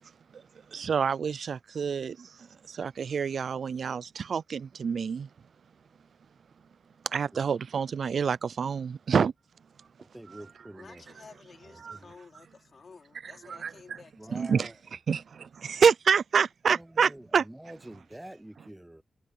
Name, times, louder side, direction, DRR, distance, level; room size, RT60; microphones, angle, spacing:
voice 1, 0.7-2.3 2.7-5.3 7.1-9.3 10.3-10.4 11.8-12.0 13.5-13.7 14.3-14.7 15.1-17.4, right 6 dB, 65° right, 0.4 m, -27 dB
voice 2, 10.0-11.0 11.6-12.1 14.2-14.8 16.6-19.0, right 1 dB, 10° right, 0.6 m, -47 dB
voice 3, 10.7-14.4, left 5 dB, 50° left, 3.6 m, -52 dB
wide cardioid pair, 140°, 0 cm